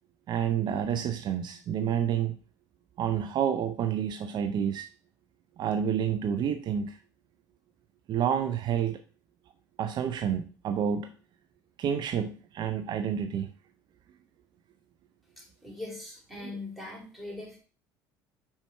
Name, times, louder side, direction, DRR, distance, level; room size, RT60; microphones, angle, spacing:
voice 1, 0.3-2.4 3.0-4.9 5.6-7.0 8.1-9.0 9.8-11.1 11.8-13.5 16.4-16.6, right 8 dB, 50° right, 0.6 m, -29 dB
voice 2, 15.4-17.6, left 2 dB, ahead, 3.8 m, -41 dB
5.7 x 4.4 x 4.3 m
hypercardioid pair, 75°, 9 cm